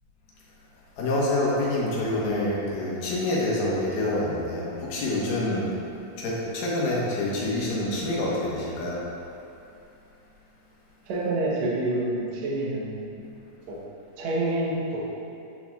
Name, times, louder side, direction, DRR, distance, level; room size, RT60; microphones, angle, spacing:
voice 1, 1.0-5.7 6.2-9.0, left 1 dB, 85° left, -5 dB, 2.8 m, -27 dB
voice 2, 11.1-13.1 13.7-13.8 14.2-15.0, right 2 dB, 65° right, -5 dB, 2.0 m, -27 dB
9.9 x 4.5 x 2.3 m, 2.7 s
omnidirectional pair, 3.8 m